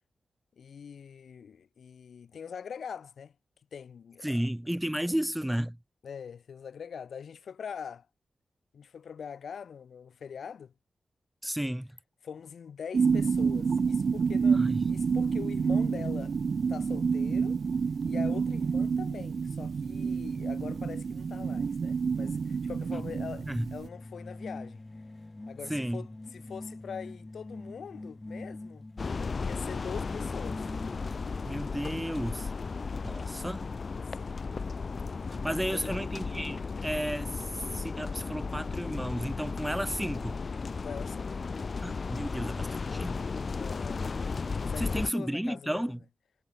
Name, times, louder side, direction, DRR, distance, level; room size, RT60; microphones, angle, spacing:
voice 1, 0.6-3.3 3.7-4.4 6.0-8.1 8.7-10.7 12.2-16.3 16.7-17.6 18.0-24.8 25.5-26.1 26.3-28.9 29.4-30.7 34.1-34.4 35.7-36.0 40.8-41.4 43.6-44.1 44.6-45.9, left 7 dB, 80° left, 5.0 m, -43 dB
voice 2, 4.2-5.8 11.4-12.0 14.5-14.9 23.5-23.7 25.7-26.1 31.5-32.5 33.0-33.7 35.3-40.4 41.8-43.2 44.8-46.0, equal, 5° right, 0.5 m, -33 dB
sound 1, 12.9-23.9, right 5 dB, 60° right, 0.4 m, -28 dB
sound 2, 22.9-31.5, left 2 dB, 20° left, 3.3 m, -45 dB
sound 3, 29.0-45.1, left 4 dB, 50° left, 1.7 m, -35 dB
wide cardioid pair, 105°, 0 cm